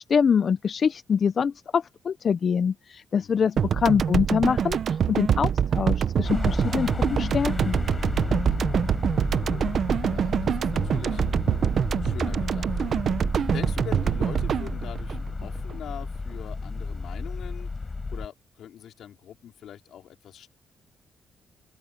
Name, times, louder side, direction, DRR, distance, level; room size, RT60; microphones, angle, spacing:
voice 1, 0.0-7.8, left 6 dB, 50° left, 0.5 m, -25 dB
sound 1, 3.6-16.0, right 8 dB, 60° right, 0.7 m, -25 dB
sound 2, 6.2-18.3, left 3 dB, 25° left, 3.9 m, -32 dB
voice 2, 9.3-9.8 10.0-11.2 12.0-13.0 13.4-17.7 18.1-20.5, left 10 dB, 75° left, 4.5 m, -43 dB
open air
cardioid pair, 110°, 0 cm